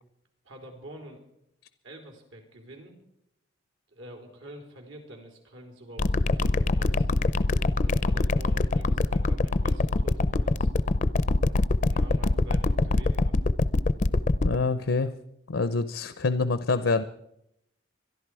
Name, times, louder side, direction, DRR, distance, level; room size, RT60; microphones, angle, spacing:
voice 1, 0.4-1.2 1.8-2.9 3.9-7.1 7.8-10.7 11.9-13.4, right 1 dB, 85° right, 3 dB, 3.7 m, -46 dB
sound 1, 6.0-14.6, left 2 dB, 40° left, 0.5 m, -23 dB
voice 2, 14.4-15.1 15.5-17.0, left 3 dB, 80° left, 13 dB, 0.7 m, -26 dB
25.5 x 11.0 x 4.8 m, 0.79 s
head